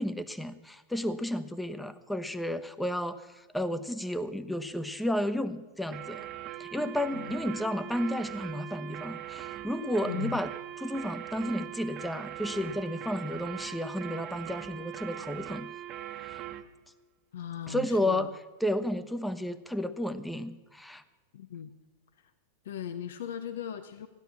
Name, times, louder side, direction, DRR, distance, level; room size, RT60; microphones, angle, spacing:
voice 1, 0.0-6.2 6.6-10.5 10.8-15.7 16.2-16.4 17.7-18.3 18.6-21.0, left 1 dB, 5° left, 12 dB, 1.0 m, -32 dB
sound 1, 5.9-16.7, right 12 dB, 40° right, 1.3 m, -41 dB
voice 2, 6.8-7.4 10.0-10.4 17.3-18.3 21.3-21.7 22.6-24.1, left 9 dB, 70° left, 10 dB, 0.9 m, -38 dB
15.0 x 10.5 x 7.2 m, 1.2 s
hypercardioid pair, 100°, 0 cm